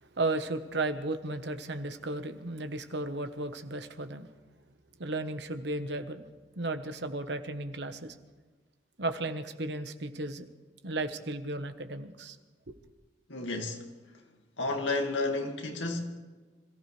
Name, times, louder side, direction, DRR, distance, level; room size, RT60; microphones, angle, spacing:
voice 1, 0.2-4.3 5.0-6.2 6.6-8.1 9.0-10.5 10.8-12.4 12.7-12.8, right 2 dB, 65° right, 1.2 m, -34 dB
voice 2, 13.3-13.8 14.6-16.2, left 2 dB, 80° left, 2.2 m, -31 dB
26.5 x 15.0 x 3.3 m
head